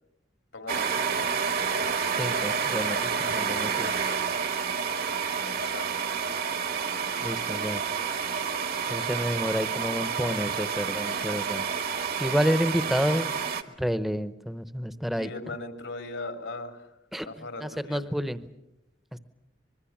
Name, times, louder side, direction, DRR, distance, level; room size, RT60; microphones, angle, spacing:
voice 1, 0.5-1.3 5.4-6.0 15.2-16.9 17.2-18.0, left 2 dB, 80° left, 6 dB, 2.9 m, -39 dB
sound 1, 0.7-13.6, right 6 dB, 55° right, 1.3 m, -29 dB
voice 2, 2.2-3.9 7.2-7.8 8.9-11.6 12.2-13.3 13.8-15.3 17.1-18.4, equal, ahead, 13 dB, 0.8 m, -29 dB
25.0 x 21.5 x 7.3 m, 0.88 s
head